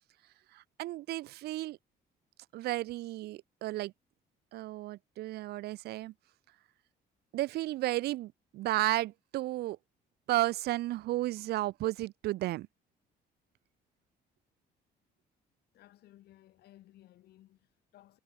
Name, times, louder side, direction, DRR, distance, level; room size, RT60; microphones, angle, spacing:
voice 1, 0.5-1.8 2.5-3.9 4.5-6.1 7.3-9.8 10.3-12.7, right 16 dB, 75° right, 0.7 m, -33 dB
voice 2, 15.7-18.2, left 14 dB, 70° left, 4.2 m, -59 dB
cardioid pair, 110°, 17 cm